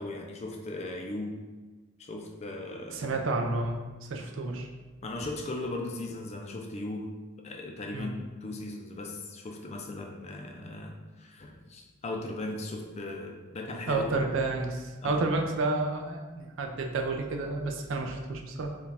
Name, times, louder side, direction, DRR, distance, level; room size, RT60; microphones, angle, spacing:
voice 1, 0.0-1.4 2.0-3.0 5.0-7.1 7.4-14.1 15.0-15.2, left 2 dB, 30° left, 2 dB, 0.4 m, -38 dB
voice 2, 2.9-4.7 7.9-8.1 13.9-18.8, right 3 dB, 60° right, 3 dB, 0.4 m, -30 dB
4.6 x 2.3 x 3.3 m, 1.3 s
head